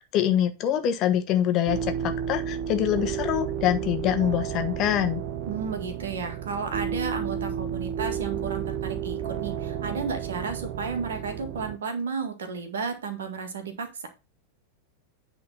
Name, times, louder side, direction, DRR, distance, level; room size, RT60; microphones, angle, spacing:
voice 1, 0.1-5.2, left 11 dB, 35° left, 7 dB, 1.1 m, -25 dB
sound 1, 1.7-11.8, right 9 dB, 45° right, 0.8 m, -32 dB
voice 2, 5.5-14.1, right 5 dB, 65° right, 6 dB, 1.9 m, -33 dB
9.6 x 3.8 x 5.7 m, 0.28 s
figure-of-eight pair, 90°, 0 cm